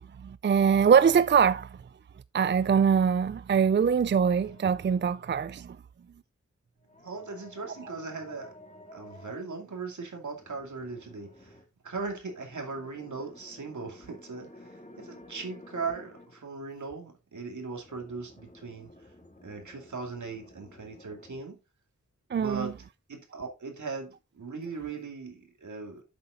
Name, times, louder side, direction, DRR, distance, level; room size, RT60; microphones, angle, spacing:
voice 1, 0.2-1.7 2.3-5.8 22.3-22.7, right 7 dB, 40° right, 0.4 m, -23 dB
sound 1, 4.1-5.0 6.8-9.5 10.3-11.7 12.3-16.4 17.8-21.4, left 2 dB, 25° left, 2.4 m, -52 dB
voice 2, 7.0-8.5 8.9-11.5 11.8-18.9 19.4-21.6 22.3-22.7 23.1-26.0, right 4 dB, 85° right, 2.5 m, -39 dB
8.2 x 6.9 x 3.8 m
wide cardioid pair, 70°, 29 cm